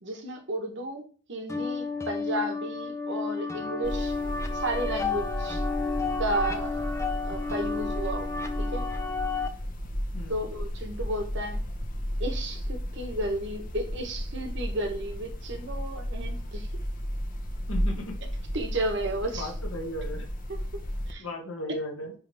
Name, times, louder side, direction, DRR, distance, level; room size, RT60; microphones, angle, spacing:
voice 1, 0.0-5.6 6.2-6.9 7.2-8.3 8.6-8.8 10.3-11.6 12.2-16.7 18.5-19.5 20.5-20.6 21.1-21.2, right 1 dB, 55° right, 4 dB, 1.3 m, -33 dB
sound 1, 1.5-9.5, left 4 dB, 15° left, 0.5 m, -32 dB
sound 2, 3.8-21.1, equal, 40° left, 0.9 m, -34 dB
voice 2, 17.7-18.2 19.3-20.3 21.2-22.1, left 1 dB, 70° left, 0 dB, 1.9 m, -36 dB
10.0 x 3.4 x 3.5 m, 0.41 s
head